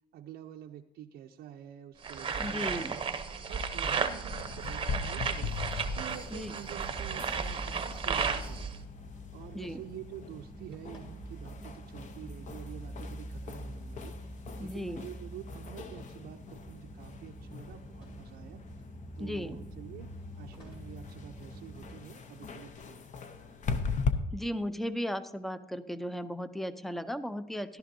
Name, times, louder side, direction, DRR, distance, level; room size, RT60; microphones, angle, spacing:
voice 1, 0.1-3.0 3.5-5.6 5.9-8.9 9.3-18.8 19.2-20.1 20.4-23.1, right 10 dB, 65° right, 2 dB, 0.5 m, -48 dB
sound 1, 2.0-8.8, right 6 dB, 30° right, 0.8 m, -34 dB
voice 2, 2.4-3.0 6.3-6.5 9.5-9.8 14.6-15.0 19.2-19.6 24.3-27.8, equal, ahead, 13 dB, 0.5 m, -36 dB
sound 2, 3.9-22.0, equal, 30° left, 2.7 m, -46 dB
sound 3, 4.3-24.1, left 5 dB, 45° left, 0.8 m, -41 dB
13.5 x 11.5 x 2.7 m, 0.93 s
cardioid pair, 110°, 17 cm